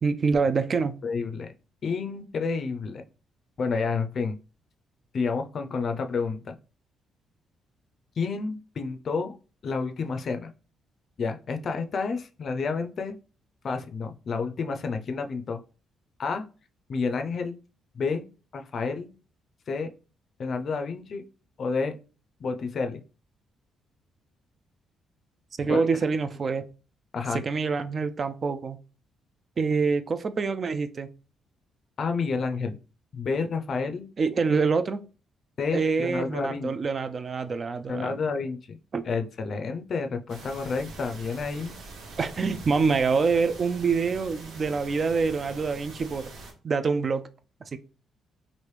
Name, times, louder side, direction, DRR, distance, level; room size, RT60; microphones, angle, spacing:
voice 1, 0.0-0.9 25.6-26.7 27.3-28.8 29.6-31.1 34.2-35.0 35.7-38.2 38.9-39.1 42.2-46.3 46.6-47.2, right 4 dB, 40° right, 0.3 m, -26 dB
voice 2, 1.0-1.5 1.8-3.0 3.6-4.4 5.1-6.6 8.2-9.3 9.6-10.5 11.2-13.1 13.6-15.6 16.2-16.4 16.9-17.6 17.9-18.2 18.5-19.1 19.7-19.9 20.4-21.2 21.6-22.0 22.4-23.0 25.7-25.9 27.1-27.4 32.0-32.8 33.1-34.1 35.6-36.7 37.9-38.8 39.0-41.8, left 4 dB, 50° left, 0.4 m, -30 dB
sound 1, 40.3-46.5, right 3 dB, 80° right, 0.8 m, -44 dB
3.1 x 2.5 x 3.2 m
cardioid pair, 90°, 0 cm